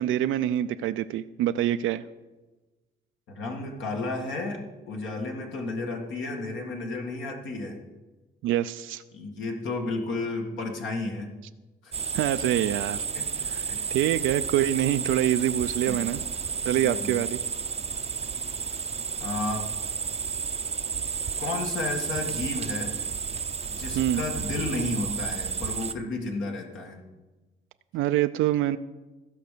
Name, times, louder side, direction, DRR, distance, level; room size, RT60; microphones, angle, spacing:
voice 1, 0.0-2.0 8.4-9.0 12.1-13.0 13.5-13.7 13.9-16.2 16.6-17.4 23.9-24.2 27.9-28.8, right 12 dB, 80° right, 10 dB, 0.4 m, -25 dB
voice 2, 3.3-7.8 9.1-11.3 11.8-11.9 13.1-13.2 13.7-13.8 15.8-16.0 16.8-17.2 19.2-19.7 21.4-23.0 23.7-27.1, left 2 dB, 75° left, 1 dB, 1.9 m, -32 dB
sound 1, 11.9-25.9, right 6 dB, 30° right, 0.5 m, -32 dB
15.5 x 5.3 x 6.7 m, 1.2 s
cardioid pair, 90°, 20 cm